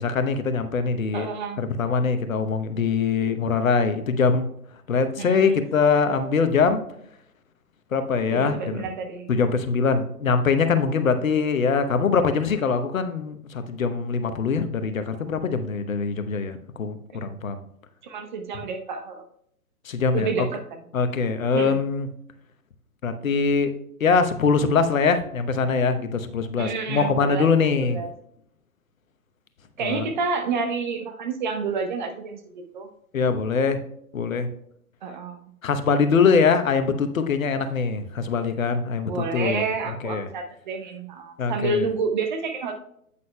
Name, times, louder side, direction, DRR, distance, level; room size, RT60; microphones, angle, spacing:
voice 1, 0.0-1.3 1.6-4.5 4.9-6.8 7.9-8.9 9.3-17.6 19.8-20.5 20.9-22.1 23.0-23.7 24.0-28.0 29.8-30.1 33.1-33.8 34.1-34.5 35.6-39.6 40.0-40.3 41.4-41.8, left 5 dB, 60° left, 10 dB, 1.0 m, -23 dB
voice 2, 1.1-1.6 5.2-5.6 8.3-9.3 18.0-19.2 20.1-20.8 21.5-21.8 26.6-28.1 29.8-32.9 35.0-35.4 39.0-42.7, right 4 dB, 30° right, 5 dB, 0.8 m, -29 dB
9.3 x 8.5 x 2.2 m, 0.71 s
figure-of-eight pair, 125°, 45 cm